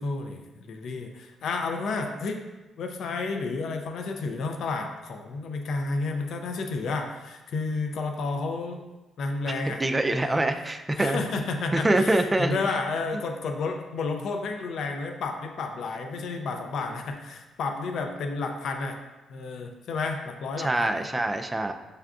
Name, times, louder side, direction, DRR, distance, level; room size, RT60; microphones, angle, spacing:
voice 1, 0.0-2.4 2.8-8.8 9.2-9.8 10.1-10.4 10.9-19.0 19.3-21.0, left 3 dB, 70° left, 4 dB, 0.5 m, -31 dB
voice 2, 9.6-11.2 11.7-12.5 20.6-21.7, right 1 dB, 15° right, 6 dB, 0.3 m, -25 dB
6.5 x 2.4 x 2.3 m, 1.1 s
cardioid pair, 90°, 0 cm